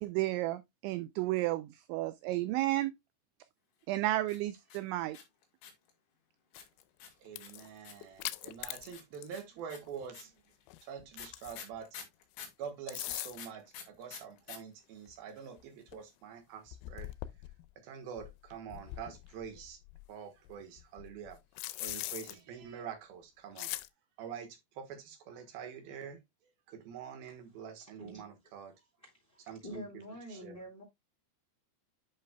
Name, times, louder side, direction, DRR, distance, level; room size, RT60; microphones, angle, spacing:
voice 1, 0.0-2.9 3.9-5.2, right 16 dB, 85° right, 2.7 m, -32 dB
sound 1, 4.2-5.9 6.5-8.1 8.9-12.6 13.3-14.6 14.8-14.9 15.1-15.6, left 7 dB, 70° left, 4.4 m, -48 dB
sound 2, 6.6-6.8 7.3-9.4 9.8-9.9 10.7-11.8 12.7-13.6 14.5-14.6 15.1-15.2 15.6-15.7 15.9-16.0 16.7-17.7 18.2-20.0 20.5-22.4 23.6-23.9, left 18 dB, 90° left, 3.2 m, -42 dB
voice 2, 7.2-10.3 10.8-12.0 12.6-17.1 17.8-19.8 20.1-23.7 24.2-26.2 26.7-28.7 29.5-29.9 30.3-30.6, right 7 dB, 65° right, 2.5 m, -46 dB
voice 3, 29.0-30.8, equal, 10° left, 4.0 m, -47 dB
11.0 x 5.6 x 2.2 m
omnidirectional pair, 5.8 m